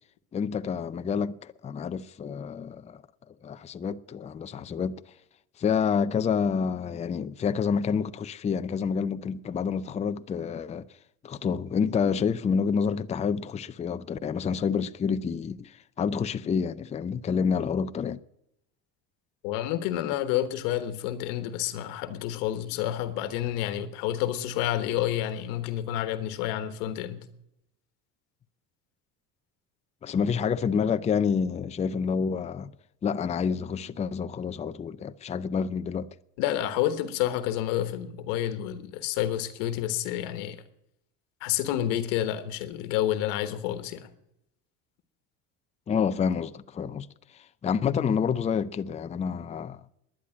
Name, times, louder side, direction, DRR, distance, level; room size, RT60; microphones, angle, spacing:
voice 1, 0.3-3.0 3.4-4.9 5.6-10.8 11.2-18.2 30.0-32.7 33.0-36.1 45.9-47.1 47.3-49.8, left 6 dB, 20° left, 0.5 m, -28 dB
voice 2, 19.4-27.2 36.4-40.6 41.4-44.1, left 12 dB, 85° left, 1.3 m, -29 dB
11.0 x 10.0 x 8.5 m
cardioid pair, 115°, 35 cm